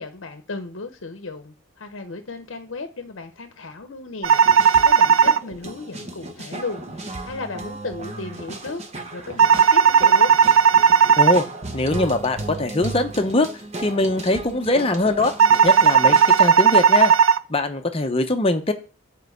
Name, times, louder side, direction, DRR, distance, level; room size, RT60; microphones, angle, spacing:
voice 1, 0.0-8.8 9.1-10.3, left 3 dB, 65° left, 7 dB, 0.8 m, -35 dB
sound 1, 4.2-5.4 9.4-11.4 15.4-17.4, right 7 dB, 75° right, 0.4 m, -15 dB
sound 2, 4.3-16.4, right 2 dB, 30° right, 1.0 m, -35 dB
voice 2, 11.7-13.5 13.8-15.3 15.6-17.1 17.5-18.7, left 2 dB, 25° left, 7 dB, 0.7 m, -21 dB
7.3 x 4.6 x 6.6 m, 0.36 s
head